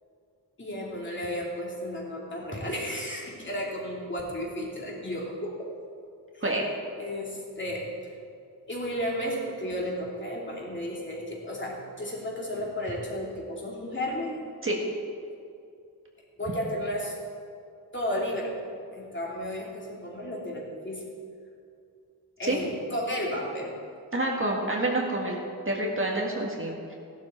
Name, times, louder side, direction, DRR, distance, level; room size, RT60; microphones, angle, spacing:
voice 1, 0.6-5.7 6.3-6.4 7.0-8.1 8.7-14.5 16.4-17.2 17.9-18.6 18.9-21.1 22.4-23.7, equal, 30° left, -3 dB, 2.9 m, -33 dB
voice 2, 24.1-25.4 25.6-26.9, right 1 dB, 35° right, -1 dB, 1.7 m, -28 dB
16.5 x 12.0 x 4.4 m, 2.4 s
wide cardioid pair, 145°, 37 cm